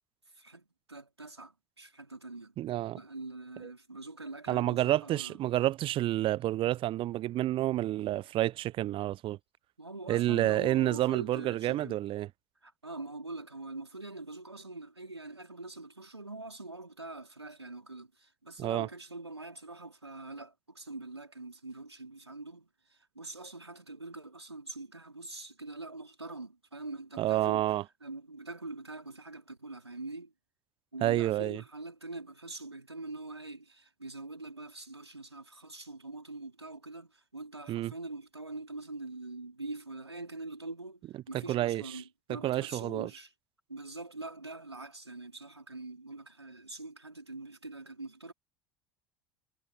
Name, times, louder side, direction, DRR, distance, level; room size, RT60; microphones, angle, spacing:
voice 1, 0.3-2.5 3.0-5.4 9.8-12.0 12.6-27.7 28.0-30.3 30.9-43.3 43.7-48.3, right 2 dB, 90° right, 4.0 m, -44 dB
voice 2, 2.6-3.0 3.6-3.7 4.5-9.4 10.1-12.3 18.6-18.9 27.2-27.8 31.0-31.6 37.7-37.9 41.3-42.0 42.3-43.1, right 14 dB, 40° right, 0.7 m, -29 dB
figure-of-eight pair, 70°, 14 cm